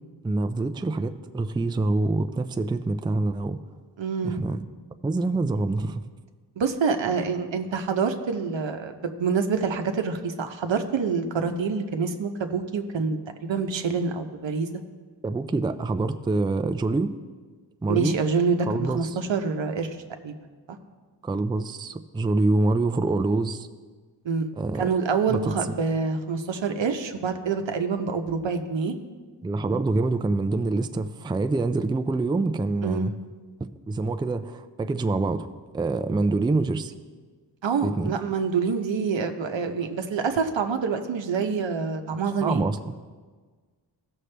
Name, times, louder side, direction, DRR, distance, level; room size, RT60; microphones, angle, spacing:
voice 1, 0.2-3.6 4.2-4.6 5.0-6.0 15.2-17.1 17.8-18.2 18.7-19.1 21.2-23.7 24.6-24.9 25.3-25.5 29.4-33.1 33.6-35.5 35.7-36.9 37.8-38.1 42.4-43.1, right 3 dB, 10° right, 9 dB, 0.3 m, -26 dB
voice 2, 4.0-4.4 6.6-14.7 17.9-20.0 20.2-20.3 24.2-24.5 24.8-28.9 32.8-33.1 37.6-42.7, right 5 dB, 90° right, 6 dB, 0.9 m, -26 dB
16.5 x 6.4 x 3.3 m, 1.5 s
wide cardioid pair, 90°, 43 cm